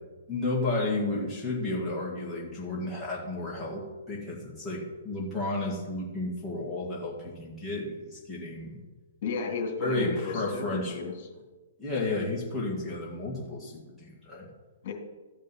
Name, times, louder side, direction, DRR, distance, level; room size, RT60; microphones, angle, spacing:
voice 1, 0.3-8.8 9.8-11.0 11.8-14.5, left 2 dB, ahead, -5 dB, 2.1 m, -32 dB
voice 2, 9.2-11.3 14.8-14.9, left 5 dB, 45° left, 2 dB, 2.7 m, -33 dB
14.5 x 5.3 x 5.6 m, 1.3 s
hypercardioid pair, 155°, 0 cm